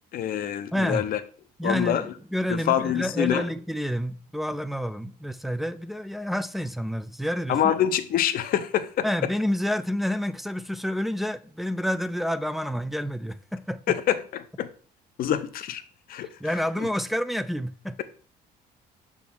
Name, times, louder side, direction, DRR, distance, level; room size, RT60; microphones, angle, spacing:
voice 1, 0.1-1.2 1.6-2.1 2.7-3.4 7.5-9.1 13.9-14.2 14.6-14.7 15.2-15.8 16.1-16.3, left 10 dB, 60° left, 0.7 m, -25 dB
voice 2, 0.7-1.1 1.6-7.7 9.0-13.9 16.4-18.0, equal, ahead, 0.5 m, -29 dB
6.1 x 3.6 x 6.0 m
cardioid pair, 110°, 17 cm